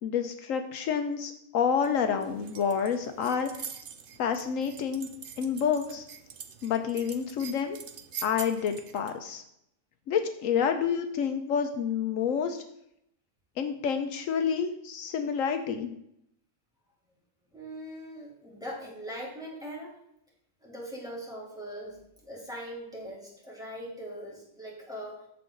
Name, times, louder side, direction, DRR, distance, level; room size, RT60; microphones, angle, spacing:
voice 1, 0.0-3.7 4.2-5.1 5.4-6.0 6.6-7.8 8.2-9.4 10.1-12.6 13.6-15.9, left 7 dB, 75° left, 7 dB, 1.1 m, -28 dB
sound 1, 1.8-9.2, right 7 dB, 50° right, 0.8 m, -45 dB
voice 2, 17.5-19.9 20.6-25.3, equal, 5° right, -5 dB, 2.9 m, -41 dB
14.0 x 4.8 x 3.8 m, 0.75 s
omnidirectional pair, 1.4 m